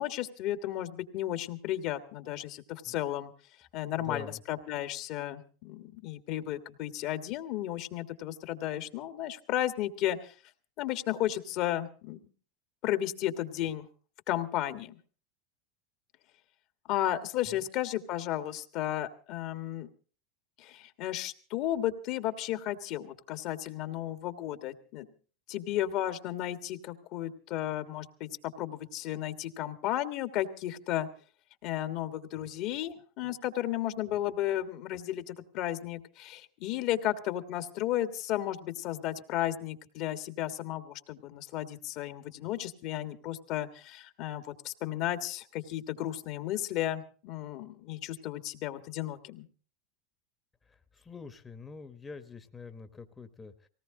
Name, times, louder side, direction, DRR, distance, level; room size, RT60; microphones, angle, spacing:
voice 1, 0.0-3.3 3.7-10.3 10.8-12.2 12.8-13.9 14.3-15.0 16.9-19.9 20.6-25.0 25.5-31.1 31.6-49.4, left 13 dB, 55° left, 9 dB, 1.5 m, -34 dB
voice 2, 3.8-4.4 17.5-17.7 50.7-53.7, left 4 dB, 15° left, 8 dB, 1.1 m, -46 dB
19.0 x 17.5 x 3.8 m, 0.39 s
hypercardioid pair, 110°, 0 cm